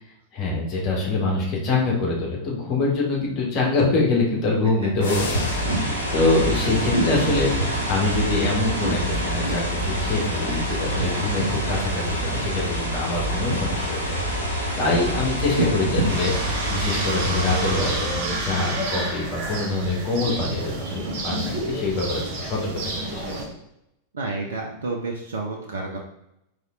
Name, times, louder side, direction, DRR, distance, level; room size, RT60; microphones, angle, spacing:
voice 1, 0.3-14.2 14.8-23.2, left 3 dB, 35° left, -2 dB, 1.5 m, -25 dB
sound 1, 5.0-6.0, left 5 dB, 55° left, 0.5 m, -34 dB
sound 2, 5.0-18.5, right 1 dB, 90° right, 1.0 m, -26 dB
sound 3, 16.1-23.5, right 2 dB, 50° right, 1.0 m, -29 dB
voice 2, 24.1-26.0, right 3 dB, 65° right, 0 dB, 0.6 m, -30 dB
4.0 x 3.3 x 3.7 m, 0.81 s
figure-of-eight pair, 90°, 0 cm